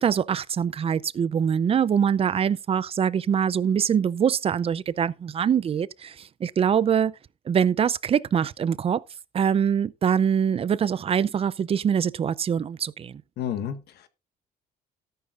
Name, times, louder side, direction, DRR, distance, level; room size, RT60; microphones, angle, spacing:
voice 1, 0.0-7.1 7.5-9.0 9.3-13.2, right 8 dB, 35° right, 0.5 m, -24 dB
voice 2, 13.4-14.1, left 9 dB, 70° left, 1.5 m, -31 dB
13.0 x 11.5 x 2.5 m
cardioid pair, 110°, 17 cm